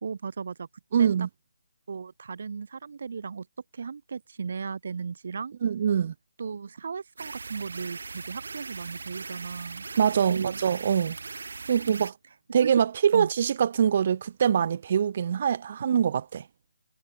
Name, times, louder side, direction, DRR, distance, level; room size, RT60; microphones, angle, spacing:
voice 1, 0.0-0.7 1.0-1.1 1.9-3.5 3.7-5.5 6.4-10.0 10.3-10.6 11.9-12.0 12.6-12.8 13.1-13.3, right 5 dB, 55° right, 3.8 m, -36 dB
voice 2, 0.9-1.3 5.6-6.1 9.9-11.2 11.7-12.1 12.5-16.4, right 8 dB, 35° right, 1.0 m, -24 dB
sound 1, 7.2-12.1, right 4 dB, 70° right, 2.2 m, -40 dB
hypercardioid pair, 165°, 0 cm